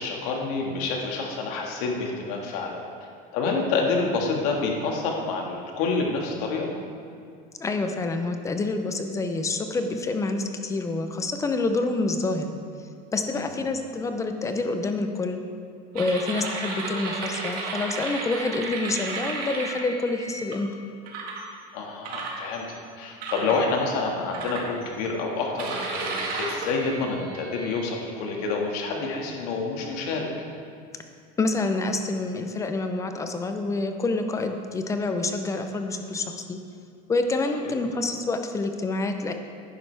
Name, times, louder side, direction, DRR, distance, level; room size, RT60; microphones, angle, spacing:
voice 1, 0.0-2.8 3.3-6.7 13.3-13.6 21.7-30.3 37.6-37.7, left 4 dB, 70° left, 0 dB, 1.8 m, -28 dB
voice 2, 7.6-12.5 13.1-15.4 15.9-20.7 31.4-36.6 37.1-39.3, left 3 dB, 15° left, 6 dB, 0.6 m, -27 dB
sound 1, 16.0-20.5 21.1-21.5 22.0-22.8 23.2-23.6 24.3-25.1 25.6-27.9, right 3 dB, 50° right, 1.9 m, -33 dB
11.0 x 9.9 x 3.4 m, 2.3 s
cardioid pair, 150°, 20 cm